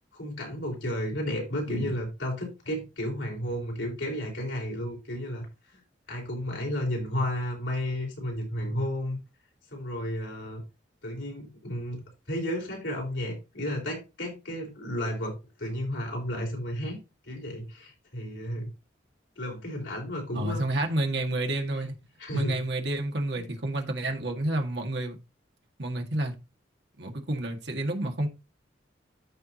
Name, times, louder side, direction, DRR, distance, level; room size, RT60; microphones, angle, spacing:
voice 1, 0.1-5.5 5.7-5.8 6.1-9.2 9.7-10.6 11.0-17.0 17.2-18.7 19.4-20.6 22.2-22.6 23.4-23.5, left 1 dB, 85° left, 4.4 m, -32 dB
voice 2, 20.3-21.9 22.3-25.2 25.8-26.3 27.0-28.3, right 1 dB, 65° right, 1.8 m, -29 dB
13.5 x 4.7 x 2.8 m
head